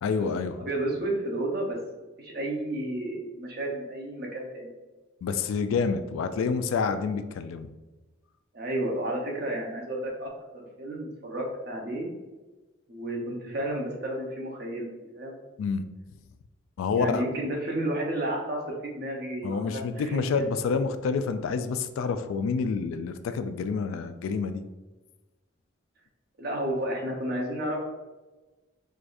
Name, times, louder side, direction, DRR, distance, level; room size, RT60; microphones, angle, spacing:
voice 1, 0.0-0.6 5.2-7.7 15.6-15.8 16.8-17.2 19.4-24.6, left 5 dB, 85° left, 10 dB, 0.3 m, -28 dB
voice 2, 0.6-1.8 2.2-4.7 8.5-12.1 12.9-14.9 15.1-15.4 16.9-20.6 26.4-27.8, right 1 dB, 50° right, -1 dB, 0.7 m, -32 dB
4.6 x 2.4 x 2.5 m, 1.2 s
head